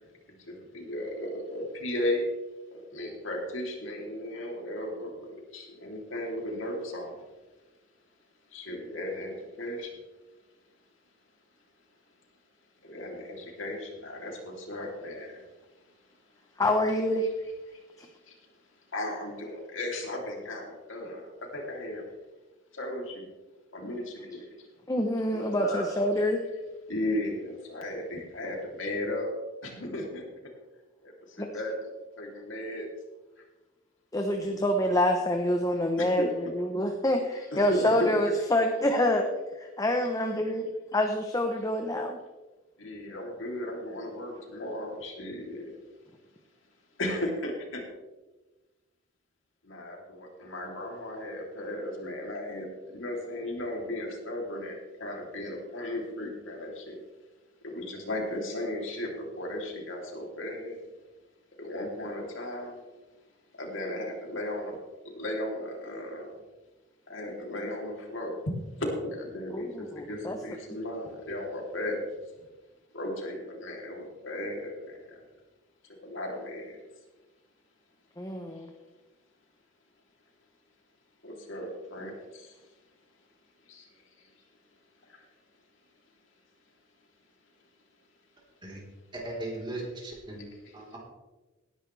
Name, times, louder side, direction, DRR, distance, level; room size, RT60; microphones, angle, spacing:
voice 1, 0.0-2.2 2.7-7.2 8.5-10.0 12.8-15.5 16.0-16.1 16.8-17.8 18.9-22.0 22.7-23.2 23.7-24.7 25.3-26.6 26.9-29.3 29.6-30.2 31.0-31.8 32.2-32.9 34.4-34.6 36.0-36.5 37.5-38.1 42.8-45.7 47.0-47.8 49.6-57.0 57.6-60.8 61.6-62.8 63.6-64.8 65.0-66.4 67.1-72.0 72.4-72.5 72.9-75.2 76.0-76.8 81.2-82.6 83.7-84.3 85.1-85.2 90.6-91.0, left 1 dB, 80° left, 0 dB, 3.2 m, -36 dB
voice 2, 16.6-17.3 24.9-26.4 31.4-31.5 34.1-39.3 39.6-40.7 40.9-42.2 69.5-70.4 78.2-78.7, left 1 dB, 20° left, 4 dB, 0.9 m, -27 dB
voice 3, 89.1-90.5 90.7-91.0, right 2 dB, 25° right, -3 dB, 4.0 m, -37 dB
18.5 x 10.5 x 3.4 m, 1.2 s
head